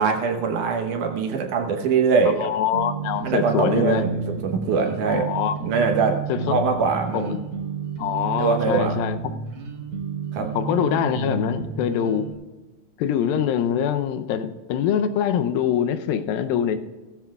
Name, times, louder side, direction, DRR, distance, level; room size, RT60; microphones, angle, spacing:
voice 1, 0.0-2.5 3.2-5.3 5.6-6.2 6.5-7.4 8.4-9.0 10.3-10.5, right 5 dB, 70° right, 3 dB, 2.3 m, -22 dB
voice 2, 2.3-4.0 5.1-5.6 6.3-6.6 7.1-7.4 8.0-9.4 10.5-12.3 13.0-16.8, left 9 dB, 85° left, 9 dB, 2.5 m, -24 dB
sound 1, 2.7-12.3, right 6 dB, 50° right, 1.7 m, -31 dB
16.0 x 15.0 x 2.3 m, 1.2 s
omnidirectional pair, 4.2 m